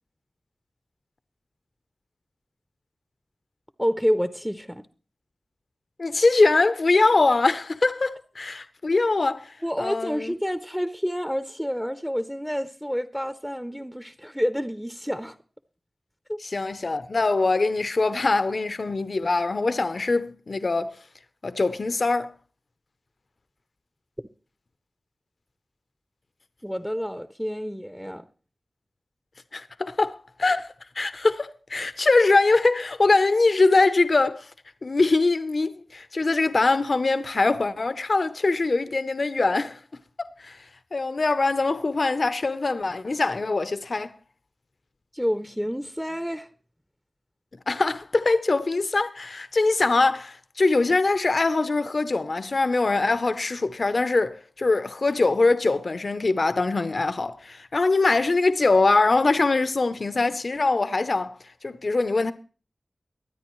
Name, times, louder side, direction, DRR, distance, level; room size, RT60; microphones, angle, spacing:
voice 1, 3.8-4.9 9.6-15.4 16.3-16.4 26.6-28.2 45.1-46.5, equal, ahead, 0.6 m, -28 dB
voice 2, 6.0-10.3 16.4-20.9 21.4-22.3 29.5-34.5 34.8-39.8 40.2-40.6 40.9-44.1 47.7-61.4 61.6-62.3, left 3 dB, 65° left, 0.7 m, -23 dB
23.0 x 9.5 x 3.1 m
wide cardioid pair, 70°, 0 cm